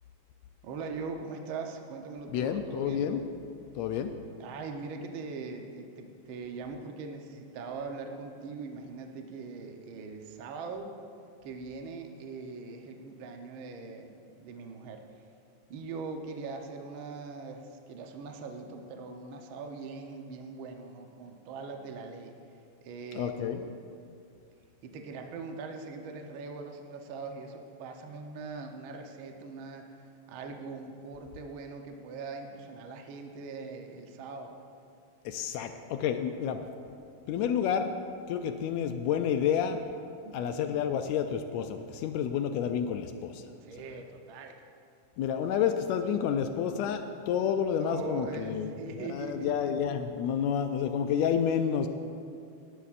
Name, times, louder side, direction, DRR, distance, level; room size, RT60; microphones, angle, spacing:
voice 1, 0.6-3.1 4.4-10.9 11.4-15.0 15.7-22.3 22.8-23.7 24.8-30.0 30.3-34.5 40.2-40.7 43.6-44.6 47.8-49.5, right 4 dB, 80° right, 4 dB, 1.1 m, -41 dB
voice 2, 2.3-3.2 3.8-4.1 23.1-23.6 35.2-36.6 37.3-37.9 38.3-39.8 40.3-43.4 45.2-51.9, left 8 dB, 80° left, 7 dB, 1.6 m, -29 dB
18.0 x 11.0 x 2.5 m, 2.4 s
omnidirectional pair, 3.5 m